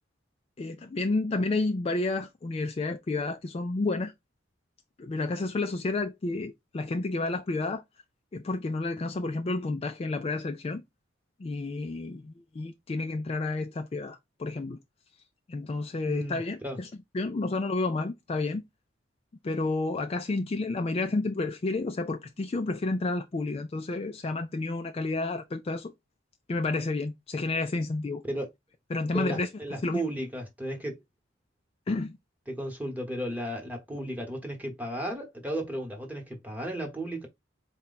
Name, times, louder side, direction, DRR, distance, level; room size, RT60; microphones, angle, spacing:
voice 1, 0.6-4.1 5.0-7.8 8.3-10.8 11.4-14.8 15.5-16.9 17.1-18.6 19.4-25.9 26.5-28.2 28.9-29.5 29.8-30.0 31.9-32.2, left 3 dB, 30° left, 0.3 m, -30 dB
voice 2, 16.0-16.8 28.2-28.5 29.1-31.0 32.5-37.3, right 1 dB, 10° right, 1.1 m, -34 dB
4.3 x 2.2 x 4.0 m
head